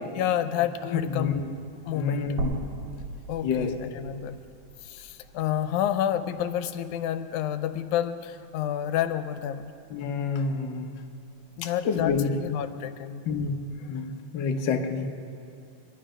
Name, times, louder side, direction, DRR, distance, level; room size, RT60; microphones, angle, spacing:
voice 1, 0.2-1.4 1.9-2.4 3.3-4.4 4.8-9.7 11.6-13.2, left 10 dB, 90° left, 10 dB, 2.1 m, -29 dB
voice 2, 0.9-1.5 1.9-2.6 3.4-3.7 9.9-11.0 11.8-12.3 13.3-13.5 13.9-15.1, left 5 dB, 60° left, 3 dB, 1.2 m, -28 dB
sound 1, 2.4-6.5 6.9-7.0 8.4-8.5, right 3 dB, 70° right, 3.1 m, -38 dB
24.5 x 11.0 x 5.1 m, 2.5 s
omnidirectional pair, 3.4 m